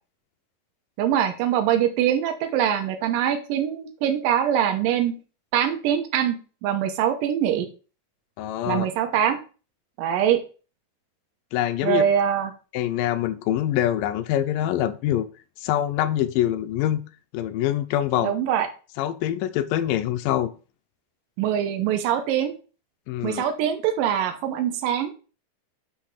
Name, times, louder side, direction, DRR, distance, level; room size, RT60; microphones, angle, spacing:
voice 1, 1.0-5.2 5.5-6.4 6.6-7.7 8.7-9.4 10.0-10.4 11.8-12.5 18.2-18.7 21.4-22.5 23.2-25.1, right 9 dB, 85° right, 6 dB, 2.6 m, -23 dB
voice 2, 8.4-8.9 11.5-12.0 12.7-15.3 15.6-17.0 17.3-18.3 19.0-20.5 23.1-23.4, left 12 dB, 90° left, 10 dB, 2.4 m, -24 dB
9.8 x 3.3 x 6.4 m, 0.35 s
omnidirectional pair, 3.8 m